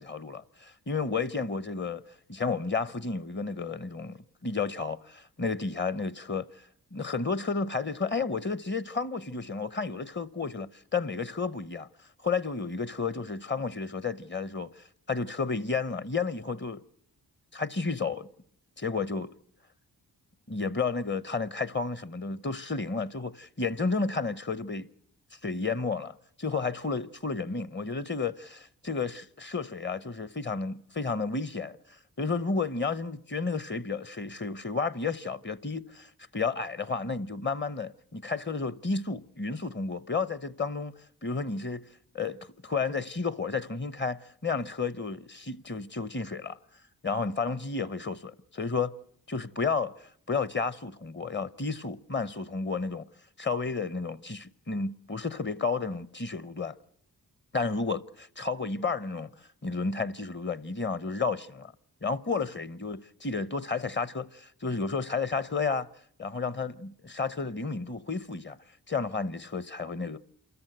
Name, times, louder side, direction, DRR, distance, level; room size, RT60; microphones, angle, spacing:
voice 1, 0.0-2.0 2.3-6.5 6.9-11.9 12.2-16.8 17.5-18.3 18.8-19.3 20.5-24.9 25.4-31.8 32.2-41.8 42.1-46.6 47.0-48.9 49.3-53.1 53.4-56.8 57.5-59.3 59.6-61.7 62.0-65.9 66.2-68.6 68.9-70.2, left 4 dB, 30° left, 0.8 m, -32 dB
27.5 x 14.0 x 7.8 m
cardioid pair, 50°, 40 cm